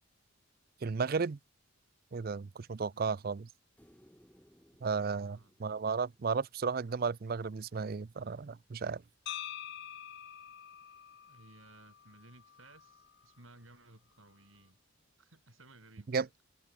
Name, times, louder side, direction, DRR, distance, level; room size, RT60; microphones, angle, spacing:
voice 1, 0.8-1.4 2.1-3.5 4.8-9.0 16.1-16.3, right 5 dB, 45° right, 0.4 m, -34 dB
voice 2, 2.8-3.2 5.2-5.5 11.3-14.8 15.2-16.3, right 2 dB, 75° right, 6.3 m, -59 dB
sound 1, 3.8-7.0 9.6-9.7, equal, 5° left, 6.5 m, -64 dB
sound 2, 9.3-13.3, left 10 dB, 55° left, 0.7 m, -46 dB
head